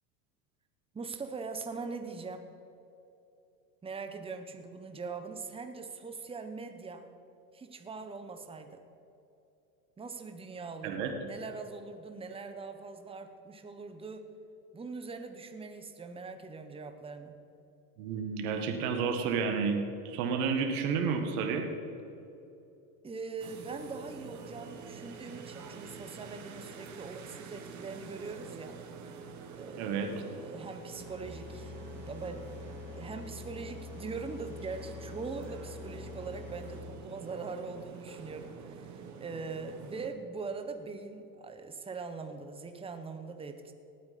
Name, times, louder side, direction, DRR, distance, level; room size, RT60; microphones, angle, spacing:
voice 1, 0.9-2.5 3.8-7.1 7.5-8.8 10.0-14.3 14.7-17.4 23.0-28.8 29.5-31.7 32.1-32.6 33.0-43.7, right 4 dB, 10° right, 7 dB, 1.0 m, -42 dB
voice 2, 18.0-21.6 29.8-30.1, right 5 dB, 65° right, 4 dB, 1.8 m, -31 dB
sound 1, 23.4-40.1, right 5 dB, 40° right, 1.4 m, -47 dB
sound 2, 31.0-36.8, left 6 dB, 60° left, 1.8 m, -47 dB
18.5 x 8.7 x 4.2 m, 2.9 s
hypercardioid pair, 105°, 46 cm